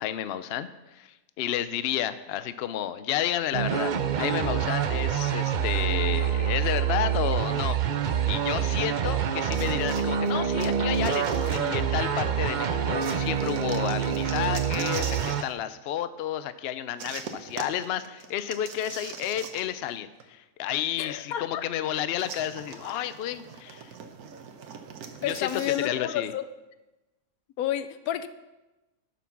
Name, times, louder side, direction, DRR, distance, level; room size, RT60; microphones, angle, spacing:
voice 1, 0.0-7.8 8.3-23.9 25.2-26.3, left 11 dB, 65° left, 0.6 m, -31 dB
sound 1, 3.5-15.4, right 8 dB, 65° right, 0.4 m, -26 dB
sound 2, 9.5-12.2 13.0-15.5 17.0-19.9 20.2-20.3 22.2-25.9, right 6 dB, 85° right, 1.4 m, -41 dB
voice 2, 21.0-21.6 25.2-26.5 27.6-28.3, left 11 dB, 85° left, 1.1 m, -30 dB
12.0 x 6.0 x 5.9 m
omnidirectional pair, 1.5 m